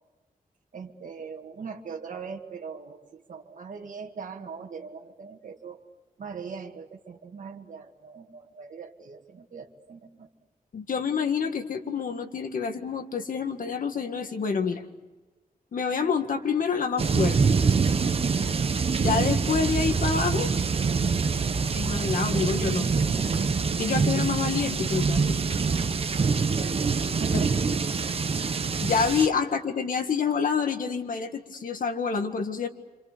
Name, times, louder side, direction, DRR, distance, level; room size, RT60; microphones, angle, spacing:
voice 1, 0.7-5.8 6.2-10.3 26.5-27.5, right 5 dB, 60° right, 1 dB, 2.0 m, -40 dB
voice 2, 10.7-14.8 15.7-17.4 19.0-20.5 21.8-23.0 23.8-25.4 28.4-28.5 28.8-32.7, left 6 dB, 65° left, 6 dB, 1.9 m, -27 dB
sound 1, 17.0-29.3, right 5 dB, 40° right, 1.0 m, -25 dB
27.0 x 27.0 x 6.9 m, 1.2 s
wide cardioid pair, 170°, 15 cm